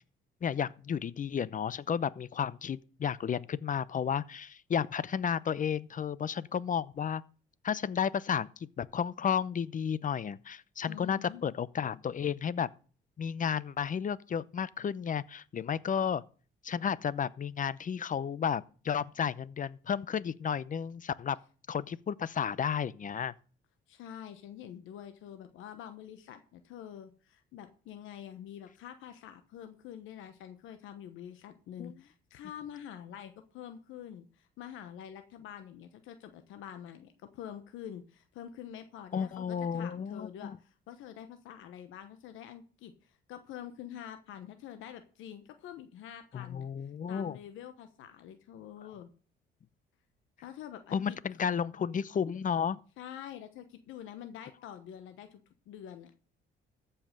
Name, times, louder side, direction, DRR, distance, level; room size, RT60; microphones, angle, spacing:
voice 1, 0.4-7.2 7.6-12.7 13.2-16.2 16.6-21.4 21.7-23.3 31.8-31.9 39.1-40.5 46.3-47.4 50.9-52.8, left 7 dB, 40° left, 0.7 m, -32 dB
voice 2, 10.9-11.4 23.9-49.1 50.4-51.2 53.0-55.4 55.7-56.1, left 10 dB, 90° left, 1.1 m, -46 dB
14.0 x 5.7 x 6.6 m
cardioid pair, 90°, 20 cm